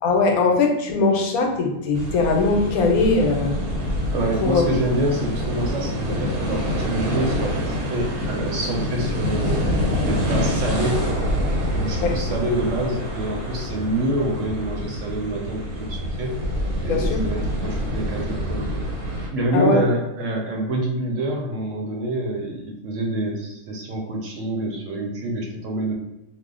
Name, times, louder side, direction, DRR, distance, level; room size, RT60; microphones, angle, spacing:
voice 1, 0.0-3.6 4.4-4.6 12.0-12.2 16.9-17.3 19.5-19.8, left 3 dB, 85° left, 2 dB, 1.1 m, -20 dB
sound 1, 1.9-19.3, equal, 85° right, 1.3 m, -26 dB
voice 2, 4.1-11.0 11.7-16.4 16.8-18.8 19.3-25.9, right 1 dB, 65° right, 0 dB, 0.9 m, -26 dB
2.7 x 2.1 x 3.6 m, 0.87 s
omnidirectional pair, 1.5 m